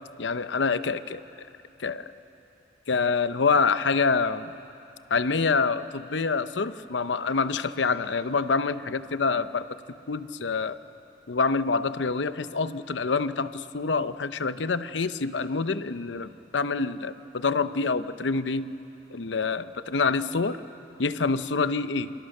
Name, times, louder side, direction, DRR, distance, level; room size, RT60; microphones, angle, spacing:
voice 1, 0.2-1.2 1.8-2.1 2.9-4.5 5.1-9.7 10.1-10.8 11.3-18.7 19.1-20.6 21.0-22.1, left 4 dB, 85° left, 12 dB, 0.7 m, -26 dB
27.5 x 25.5 x 6.6 m, 2.8 s
head